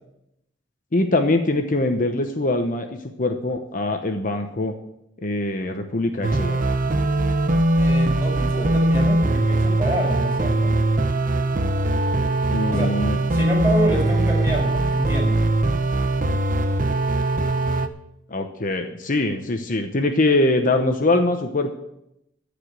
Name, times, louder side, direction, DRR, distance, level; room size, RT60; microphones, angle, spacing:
voice 1, 0.9-4.7 5.2-6.6 12.5-13.2 18.3-21.7, left 2 dB, 45° left, 5 dB, 0.9 m, -23 dB
sound 1, 6.2-17.9, right 2 dB, 45° right, 0.8 m, -21 dB
voice 2, 7.8-10.7 12.7-12.9 13.3-15.4, equal, 10° right, -1 dB, 5.0 m, -27 dB
15.0 x 5.1 x 9.6 m, 0.82 s
head